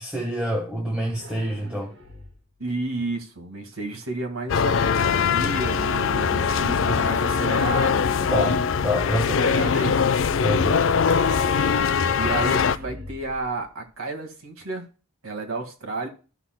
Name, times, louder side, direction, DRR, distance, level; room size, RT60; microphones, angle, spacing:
voice 1, 0.0-1.9 8.3-8.6 8.8-9.5 10.4-10.9, equal, 5° right, 1.3 m, -27 dB
sound 1, 1.1-2.6 5.8-7.3 9.3-10.5 12.2-13.9, left 1 dB, 60° right, 1.9 m, -43 dB
voice 2, 2.6-8.5 9.4-10.0 12.1-14.9 15.2-16.1, right 2 dB, 90° right, 1.9 m, -31 dB
sound 2, 4.5-12.8, left 6 dB, 65° left, 0.4 m, -22 dB
sound 3, 6.6-11.1, left 2 dB, 15° left, 2.0 m, -44 dB
14.0 x 6.1 x 2.2 m
head